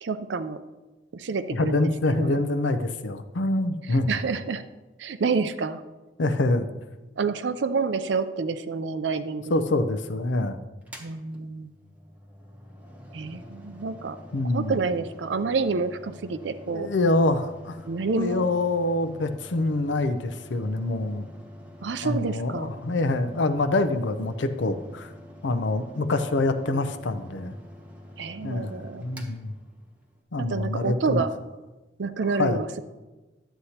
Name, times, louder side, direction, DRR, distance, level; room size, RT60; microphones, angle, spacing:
voice 1, 0.0-0.6 1.1-1.9 2.2-2.4 4.1-4.6 5.0-5.8 7.2-9.4 11.0-11.7 13.1-14.2 14.5-16.9 17.9-18.5 21.8-22.7 28.2-29.0 30.4-31.3 32.0-32.8, right 4 dB, 75° right, 11 dB, 0.5 m, -28 dB
voice 2, 1.5-4.2 6.2-6.7 9.5-10.6 14.3-14.8 16.7-17.8 18.2-21.3 22.0-25.1 25.4-27.5 28.4-29.5 30.3-31.2 32.4-32.6, left 2 dB, 85° left, 9 dB, 0.6 m, -25 dB
Mechanical fan, 10.8-30.2, equal, 10° right, 0.9 m, -46 dB
11.5 x 7.9 x 2.9 m, 1.1 s
head